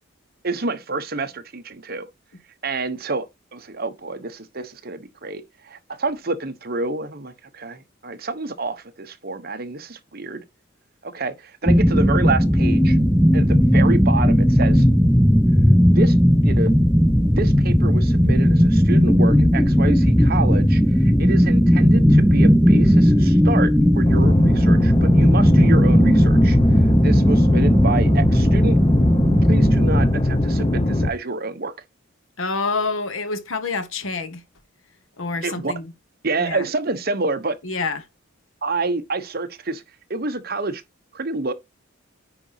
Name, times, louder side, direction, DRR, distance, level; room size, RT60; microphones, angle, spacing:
voice 1, 0.4-2.1 2.6-3.3 3.5-10.4 11.0-13.0 13.3-14.9 15.9-16.2 16.4-16.7 17.4-26.6 27.0-28.8 29.5-31.7 35.4-35.7 36.2-37.6 38.6-39.8 40.1-40.8 41.1-41.5, right 3 dB, 45° right, 1.1 m, -28 dB
sound 1, 11.7-30.1, equal, ahead, 0.5 m, -16 dB
sound 2, 24.1-31.1, left 1 dB, 25° left, 0.8 m, -21 dB
voice 2, 32.4-34.4 35.2-35.9 36.4-36.7 37.6-38.1, left 4 dB, 70° left, 1.2 m, -27 dB
9.8 x 4.0 x 4.7 m
head